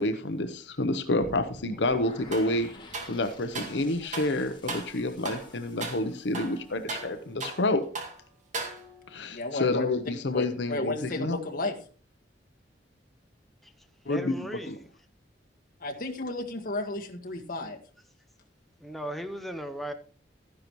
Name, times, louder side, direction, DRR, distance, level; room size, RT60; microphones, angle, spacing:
voice 1, 0.0-2.7 3.1-7.8 9.1-11.4 14.1-14.8, left 2 dB, 70° left, 0.8 m, -29 dB
sound 1, 1.2-7.2, left 2 dB, 25° left, 2.3 m, -49 dB
sound 2, 2.3-2.5 2.9-3.8 4.1-4.4 4.7-5.0 5.3-5.5 5.8-6.0 6.3-7.7 8.0-8.2 8.5-9.1, right 3 dB, 45° right, 2.1 m, -37 dB
voice 2, 9.3-9.9 10.3-11.7 15.8-17.8, left 2 dB, 50° left, 1.8 m, -33 dB
voice 3, 14.1-14.9 18.8-19.9, equal, ahead, 0.7 m, -37 dB
13.5 x 10.5 x 3.1 m
head